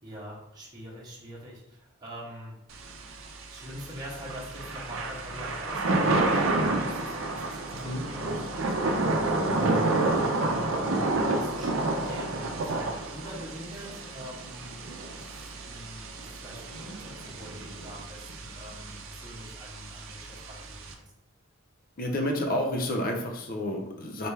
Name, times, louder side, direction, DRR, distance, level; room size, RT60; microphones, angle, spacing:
voice 1, 0.0-2.6 3.5-10.8 11.3-14.8 15.0-21.0, equal, 20° right, -6 dB, 1.2 m, -44 dB
Thunder / Rain, 2.7-20.9, right 2 dB, 75° right, 0.6 m, -30 dB
voice 2, 22.0-24.3, left 1 dB, 45° left, 3 dB, 0.7 m, -30 dB
4.1 x 3.3 x 3.4 m, 0.81 s
head